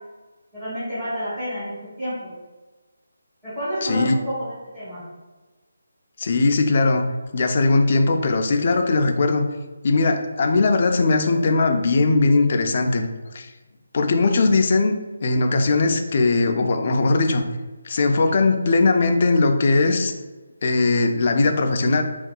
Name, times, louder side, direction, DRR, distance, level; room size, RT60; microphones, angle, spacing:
voice 1, 0.5-2.1 3.4-5.0, equal, 10° right, -16 dB, 1.0 m, -29 dB
voice 2, 3.8-4.2 6.2-7.1 7.3-9.5 9.8-13.1 13.3-13.5 13.9-15.0 15.2-17.4 17.8-20.1 20.6-22.0, left 3 dB, 40° left, 4 dB, 0.3 m, -19 dB
3.6 x 2.3 x 2.2 m, 1.2 s
figure-of-eight pair, 165°, 0 cm